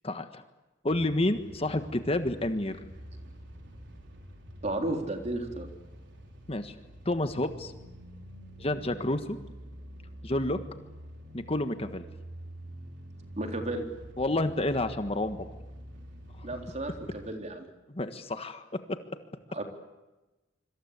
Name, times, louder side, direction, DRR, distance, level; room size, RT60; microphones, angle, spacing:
voice 1, 0.0-0.4 0.8-2.8 6.5-6.7 7.0-7.7 8.6-9.4 10.2-10.6 11.3-12.0 14.2-15.4 17.9-19.0, left 1 dB, 35° left, 8 dB, 1.5 m, -29 dB
sound 1, 0.9-17.3, equal, 75° right, 5.2 m, -47 dB
voice 2, 4.6-5.7 13.4-13.9 16.4-17.6 19.5-19.6, right 1 dB, 40° right, 4 dB, 3.9 m, -33 dB
26.0 x 25.5 x 8.3 m, 1.1 s
head